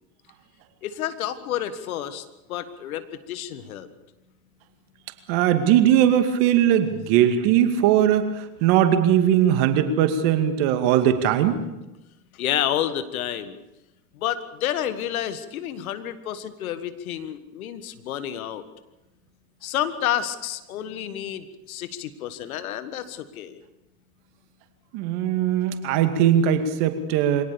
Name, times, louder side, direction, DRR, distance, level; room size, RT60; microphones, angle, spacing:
voice 1, 0.8-3.9 12.3-13.6 14.1-18.6 19.6-23.6, left 11 dB, 85° left, 12 dB, 1.6 m, -30 dB
voice 2, 5.3-11.6 24.9-27.4, right 10 dB, 70° right, 8 dB, 2.5 m, -20 dB
24.0 x 18.0 x 7.0 m, 0.98 s
hypercardioid pair, 75°, 41 cm